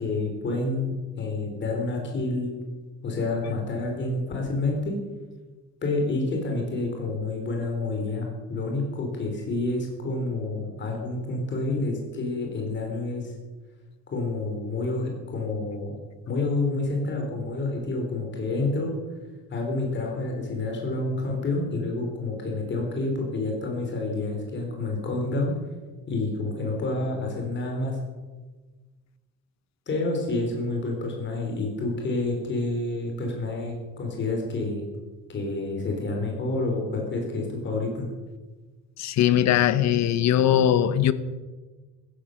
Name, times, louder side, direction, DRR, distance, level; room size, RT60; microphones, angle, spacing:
voice 1, 0.0-2.6 3.0-5.0 5.8-13.3 14.1-15.9 16.3-18.9 19.5-25.5 26.1-28.0 29.9-34.8 35.3-38.0, left 2 dB, 35° left, 3.7 m, -28 dB
voice 2, 39.0-41.1, left 10 dB, 55° left, 1.0 m, -20 dB
16.0 x 13.5 x 6.4 m
cardioid pair, 160°, 32 cm